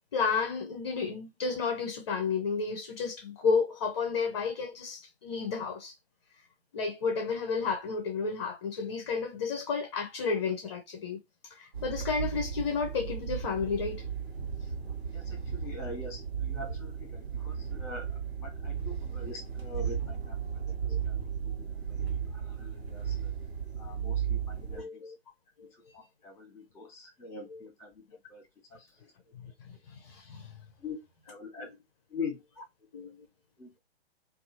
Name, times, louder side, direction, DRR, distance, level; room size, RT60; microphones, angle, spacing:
voice 1, 0.1-5.9 6.7-11.2 11.5-14.1 20.9-21.0 24.7-25.2 25.6-25.7 27.5-27.6 29.6-30.5 32.9-33.3, left 5 dB, 25° left, 0.5 m, -32 dB
sound 1, 11.7-24.8, right 7 dB, 75° right, 1.1 m, -35 dB
voice 2, 15.1-20.8 21.0-23.3 23.8-25.0 25.7-28.4 28.7-29.3 30.8-31.7 32.1-32.6 33.6-33.8, left 3 dB, 10° left, 1.0 m, -44 dB
2.7 x 2.3 x 2.6 m
figure-of-eight pair, 130°, 32 cm